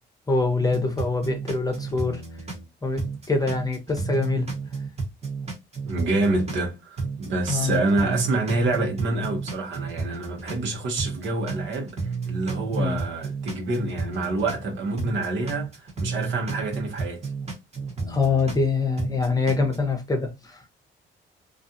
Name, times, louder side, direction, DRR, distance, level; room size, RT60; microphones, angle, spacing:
voice 1, 0.3-2.2 2.8-4.5 7.5-7.8 12.8-13.0 18.1-20.6, left 4 dB, 20° left, 0.7 m, -24 dB
sound 1, 0.6-2.7 3.0-6.7 7.0-10.7 11.0-14.7 15.0-18.7 19.0-19.8, right 4 dB, 35° right, 1.1 m, -32 dB
voice 2, 5.8-17.3, right 2 dB, 70° right, 1.0 m, -27 dB
2.5 x 2.3 x 2.7 m
cardioid pair, 90°, 20 cm